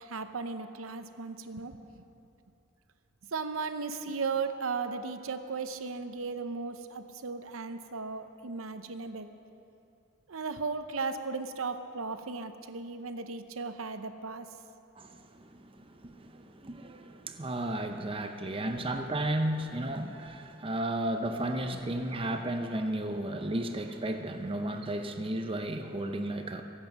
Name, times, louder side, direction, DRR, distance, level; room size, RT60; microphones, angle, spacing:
voice 1, 0.0-2.0 3.3-9.3 10.3-14.5, right 4 dB, 90° right, 9 dB, 0.8 m, -36 dB
voice 2, 15.0-26.6, right 1 dB, 25° right, 5 dB, 0.6 m, -34 dB
24.0 x 8.2 x 5.4 m, 2.7 s
head